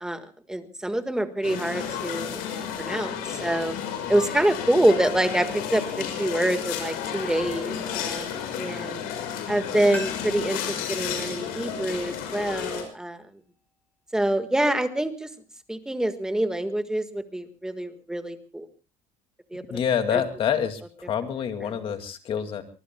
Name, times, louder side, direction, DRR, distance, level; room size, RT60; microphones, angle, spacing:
voice 1, 0.0-3.7 4.1-9.0 9.5-13.2 14.1-15.3 15.7-18.7 19.5-19.8 20.1-20.2 21.7-21.8, right 1 dB, 5° right, 7 dB, 1.6 m, -26 dB
sound 1, 1.4-12.8, left 8 dB, 85° left, 6.2 m, -32 dB
sound 2, 9.9-12.7 13.0-13.1, left 2 dB, 10° left, 4.8 m, -43 dB
voice 2, 19.7-20.8 21.1-22.6, left 8 dB, 35° left, 7 dB, 2.3 m, -26 dB
24.5 x 23.0 x 2.3 m, 0.32 s
cardioid pair, 165°, 15 cm